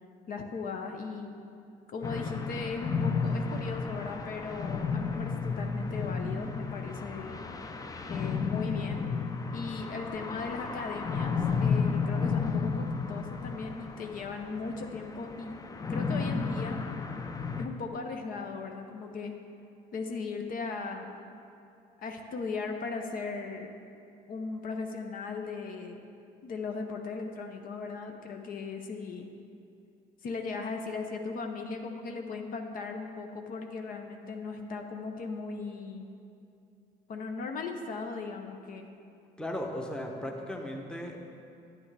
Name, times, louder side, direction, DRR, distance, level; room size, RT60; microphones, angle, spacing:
voice 1, 0.3-1.3 1.9-7.4 8.0-9.1 9.5-15.6 15.9-16.8 17.6-19.3 19.9-21.2 22.0-23.7 24.3-26.0 26.4-29.3 30.2-36.1 37.1-38.9, left 4 dB, 55° left, 4 dB, 0.7 m, -37 dB
sound 1, 2.0-17.7, left 5 dB, 20° left, 0.5 m, -32 dB
voice 2, 39.4-41.3, left 1 dB, 5° left, 1 dB, 0.9 m, -36 dB
9.6 x 9.3 x 3.3 m, 2.5 s
cardioid pair, 110°, 17 cm